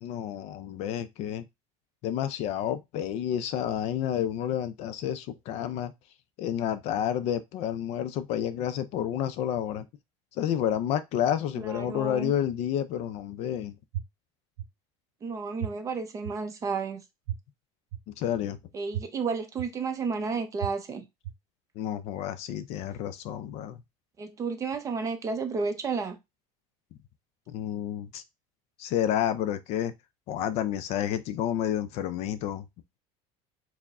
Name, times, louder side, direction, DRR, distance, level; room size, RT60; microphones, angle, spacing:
voice 1, 0.0-1.4 2.0-5.9 6.4-9.9 10.4-13.8 18.1-18.6 21.8-23.8 27.5-28.2 28.8-29.9 30.3-32.7, left 10 dB, 45° left, 0.4 m, -30 dB
voice 2, 11.6-12.3 15.2-17.0 18.7-21.0 24.2-26.2, right 4 dB, 20° right, 0.6 m, -32 dB
sound 1, 13.9-14.0 14.6-14.7 15.6-15.7 16.2-16.3 17.3-17.4 17.9-18.0 18.9-19.0 19.6-19.7 20.6-20.7 21.2-21.3, right 12 dB, 75° right, 0.7 m, -32 dB
4.6 x 2.1 x 3.5 m
cardioid pair, 165°, 15 cm